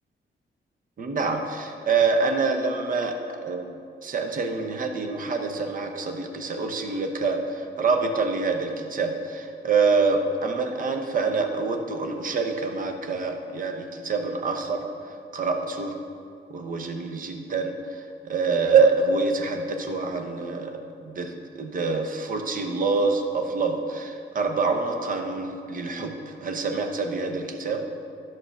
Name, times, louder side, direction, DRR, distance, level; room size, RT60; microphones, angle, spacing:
voice 1, 1.0-14.9 15.3-15.9 16.5-20.7 21.0-27.8, right 4 dB, 45° right, 4 dB, 0.8 m, -26 dB
11.5 x 3.8 x 6.4 m, 2.4 s
wide cardioid pair, 165°, 20 cm